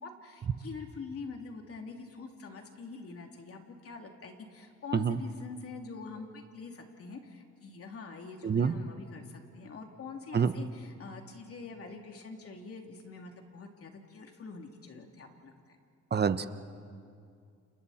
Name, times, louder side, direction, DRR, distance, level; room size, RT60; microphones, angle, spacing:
voice 1, 0.0-15.8, left 4 dB, 50° left, 2 dB, 3.1 m, -45 dB
voice 2, 8.4-8.7 10.3-10.5 16.1-16.5, right 6 dB, 35° right, 11 dB, 1.0 m, -26 dB
30.0 x 29.5 x 4.4 m, 2.3 s
cardioid pair, 90°, 30 cm